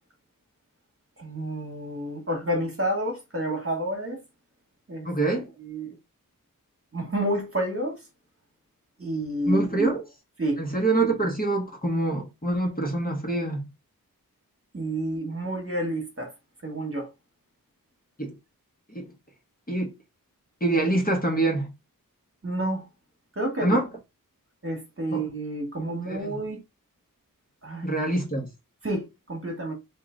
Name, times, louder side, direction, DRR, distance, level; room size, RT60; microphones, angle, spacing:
voice 1, 1.2-4.2 4.9-5.1 5.6-6.0 6.9-8.1 9.0-9.9 10.4-10.6 14.7-16.3 16.6-17.1 22.4-22.9 23.3-23.8 24.6-26.6 27.6-27.9 28.8-29.7, right 1 dB, 40° right, 1.6 m, -29 dB
voice 2, 5.0-5.5 9.5-10.0 10.6-13.6 18.2-18.3 18.9-19.1 19.7-19.9 20.6-21.7 23.6-23.8 25.1-25.2 26.1-26.4 27.8-28.5, right 2 dB, 25° left, 1.5 m, -25 dB
3.8 x 2.9 x 3.7 m
wide cardioid pair, 50°, 35 cm